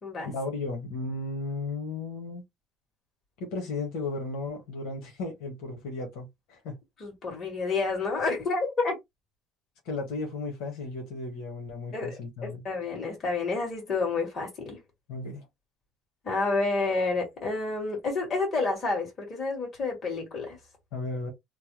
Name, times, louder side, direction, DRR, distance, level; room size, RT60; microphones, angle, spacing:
voice 1, 0.2-2.4 3.4-6.8 9.8-12.6 15.1-15.5 20.9-21.3, left 3 dB, 80° left, 1.3 m, -35 dB
voice 2, 7.0-9.0 11.9-14.8 16.2-20.6, left 3 dB, 35° left, 2.0 m, -29 dB
3.2 x 2.2 x 2.9 m
cardioid pair, 120°, 0 cm